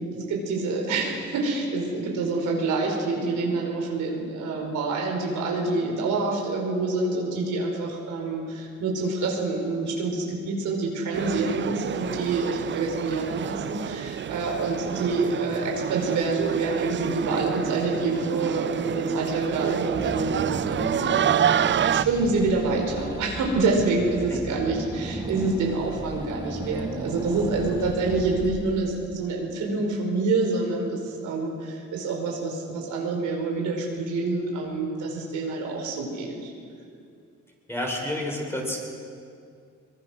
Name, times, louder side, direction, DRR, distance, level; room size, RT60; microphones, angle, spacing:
voice 1, 0.0-36.5, right 3 dB, 85° right, 0 dB, 5.2 m, -27 dB
sound 1, 11.1-22.0, right 9 dB, 40° right, 0.5 m, -28 dB
Car / Engine, 19.9-29.1, right 2 dB, 15° right, 1.8 m, -35 dB
voice 2, 37.7-38.8, left 1 dB, 10° left, -1 dB, 6.5 m, -30 dB
24.0 x 22.5 x 6.4 m, 2.3 s
cardioid pair, 90°, 30 cm